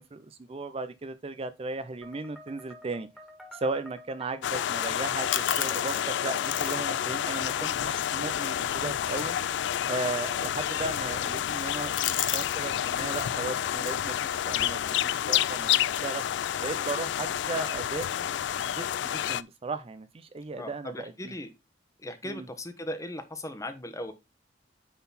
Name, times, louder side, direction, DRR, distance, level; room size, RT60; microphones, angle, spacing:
voice 1, 0.0-3.1 3.5-9.4 9.8-11.9 12.3-16.2 16.6-18.3 18.6-21.3 22.2-22.5, right 3 dB, 30° right, 0.4 m, -36 dB
sound 1, 2.0-9.2, equal, ahead, 1.8 m, -49 dB
sound 2, 4.4-19.4, left 10 dB, 65° left, 0.3 m, -29 dB
sound 3, 4.8-12.6 12.8-13.3 13.7-16.1, left 11 dB, 85° left, 0.7 m, -38 dB
voice 2, 20.6-21.5 22.0-24.1, left 1 dB, 15° left, 1.0 m, -38 dB
9.4 x 4.0 x 4.1 m
head